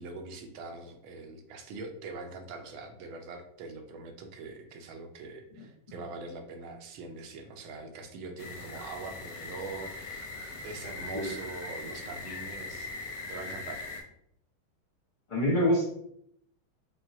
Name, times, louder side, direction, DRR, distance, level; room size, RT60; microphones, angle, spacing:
voice 1, 0.0-10.3 10.6-12.9 13.3-13.8, right 3 dB, 80° right, 4 dB, 1.5 m, -43 dB
sound 1, 8.4-14.0, left 3 dB, 65° left, 1.3 m, -40 dB
voice 2, 15.3-15.9, equal, 35° left, -4 dB, 0.8 m, -25 dB
6.0 x 2.3 x 2.7 m, 0.72 s
omnidirectional pair, 2.3 m